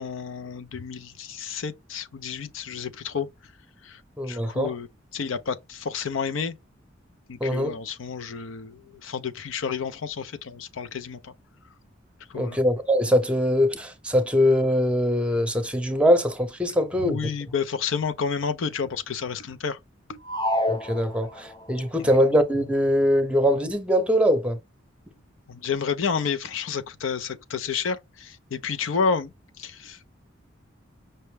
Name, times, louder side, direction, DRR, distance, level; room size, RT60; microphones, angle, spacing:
voice 1, 0.0-3.3 3.8-4.0 4.3-4.9 5.1-6.5 7.3-11.3 12.3-12.6 17.0-19.8 20.1-20.2 25.5-29.3 29.6-30.1, left 6 dB, 80° left, 0.5 m, -30 dB
voice 2, 4.2-4.7 7.4-7.7 12.3-17.2 20.7-24.6, equal, 5° right, 0.8 m, -22 dB
sound 1, 20.3-21.7, left 1 dB, 20° left, 0.5 m, -28 dB
5.5 x 2.1 x 3.2 m
head